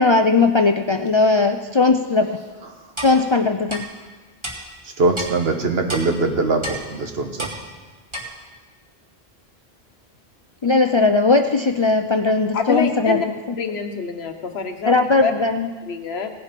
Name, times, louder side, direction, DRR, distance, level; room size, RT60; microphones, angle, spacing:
voice 1, 0.0-2.3 3.0-3.8 10.6-13.4 14.9-15.7, left 3 dB, 45° left, 6 dB, 0.4 m, -18 dB
Clock, 3.0-3.1 3.7-3.8 4.4-4.5 5.1-5.3 5.9-6.0 6.6-6.8 7.4-7.5 8.1-8.2, right 1 dB, 30° right, 1.9 m, -29 dB
voice 2, 5.0-7.5, right 3 dB, 75° right, 4 dB, 1.4 m, -21 dB
voice 3, 12.5-13.3 13.6-15.3 15.9-16.3, left 5 dB, 85° left, 6 dB, 1.3 m, -26 dB
18.0 x 7.3 x 5.2 m, 1.4 s
omnidirectional pair, 1.0 m